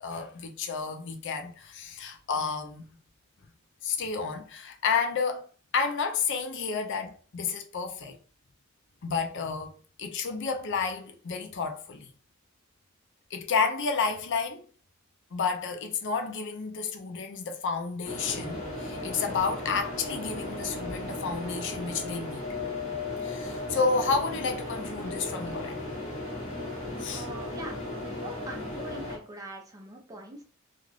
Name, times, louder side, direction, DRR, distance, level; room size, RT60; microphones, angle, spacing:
voice 1, 0.0-2.8 3.8-5.5 5.7-8.2 9.0-12.1 13.3-14.6 15.3-22.4 23.2-25.8 27.0-27.3, left 5 dB, 60° left, 0.5 m, -31 dB
sound 1, 18.0-29.2, left 2 dB, 30° left, 1.1 m, -36 dB
voice 2, 27.1-30.4, right 2 dB, 15° right, 0.6 m, -43 dB
2.4 x 2.4 x 3.2 m
head